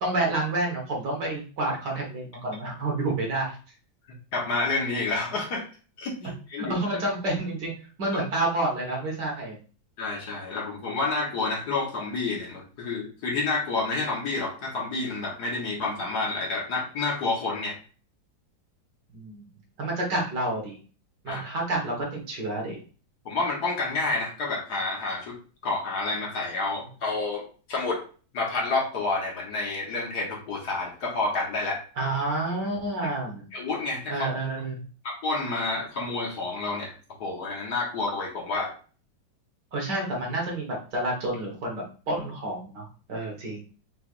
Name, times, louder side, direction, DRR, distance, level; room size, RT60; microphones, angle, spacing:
voice 1, 0.0-3.6 6.6-7.7 8.0-9.6 19.1-19.4 19.8-20.8 21.2-22.8 32.0-33.4 34.1-34.8 39.7-43.6, right 2 dB, 65° right, -1 dB, 1.9 m, -29 dB
voice 2, 4.3-5.6 6.0-6.7 10.0-17.8 21.3-21.4 23.3-25.4 25.6-28.0 28.3-31.8 33.5-34.3 35.0-36.9 37.2-38.7, left 3 dB, 60° left, -1 dB, 1.6 m, -29 dB
5.8 x 3.3 x 2.4 m, 0.38 s
omnidirectional pair, 2.1 m